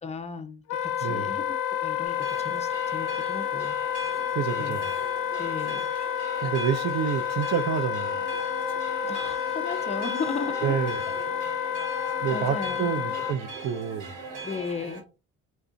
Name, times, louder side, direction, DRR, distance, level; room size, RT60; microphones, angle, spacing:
voice 1, 0.0-1.5 1.8-3.8 4.6-4.8 5.4-5.9 9.0-10.8 12.3-12.9 14.4-15.0, left 4 dB, 20° left, 0.5 m, -36 dB
Wind instrument woodwind instrument, 0.7-13.4, left 9 dB, 75° left, 0.5 m, -30 dB
voice 2, 1.0-1.3 4.3-4.9 6.4-8.3 10.6-11.0 12.2-14.2, right 8 dB, 60° right, 0.5 m, -28 dB
sound 1, 2.0-15.0, right 3 dB, 85° right, 1.1 m, -40 dB
2.4 x 2.2 x 3.7 m
cardioid pair, 90°, 30 cm